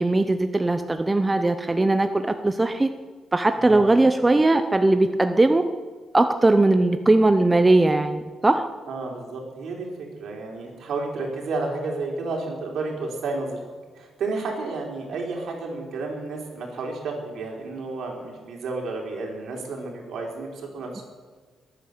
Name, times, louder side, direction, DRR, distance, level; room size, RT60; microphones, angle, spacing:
voice 1, 0.0-2.9 3.3-5.6 6.1-8.7, right 2 dB, 15° right, 8 dB, 0.6 m, -19 dB
voice 2, 8.9-13.6 14.0-21.0, right 3 dB, 65° right, 0 dB, 4.0 m, -31 dB
22.0 x 9.2 x 6.7 m, 1.5 s
cardioid pair, 150°, 0 cm